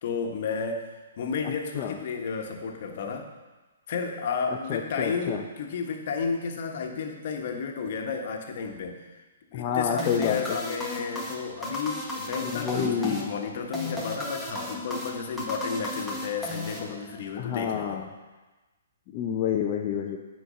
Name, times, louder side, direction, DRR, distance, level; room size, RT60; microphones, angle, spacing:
voice 1, 0.0-0.9 1.2-3.3 3.9-9.0 9.5-18.0, left 5 dB, 55° left, 3 dB, 1.4 m, -32 dB
voice 2, 1.4-2.0 4.7-5.4 9.5-10.4 12.4-13.2 17.4-18.1 19.1-20.2, left 8 dB, 35° left, 0 dB, 0.7 m, -28 dB
sound 1, 10.0-17.4, left 1 dB, ahead, 1.6 m, -35 dB
9.9 x 4.6 x 7.0 m, 1.2 s
hypercardioid pair, 130°, 0 cm